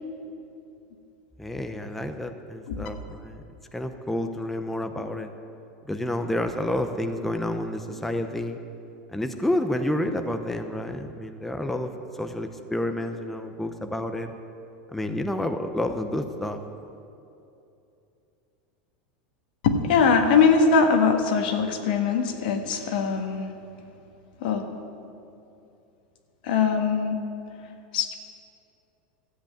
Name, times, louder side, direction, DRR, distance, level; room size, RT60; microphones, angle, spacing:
voice 1, 1.4-3.4 3.7-5.3 5.9-8.6 9.1-14.3 14.9-16.6, left 1 dB, 5° left, 6 dB, 0.7 m, -29 dB
voice 2, 19.6-23.5 24.4-24.7 26.4-27.2 27.9-28.1, left 5 dB, 80° left, 4 dB, 1.6 m, -21 dB
13.5 x 8.1 x 8.7 m, 2.7 s
supercardioid pair, 140°, 5 cm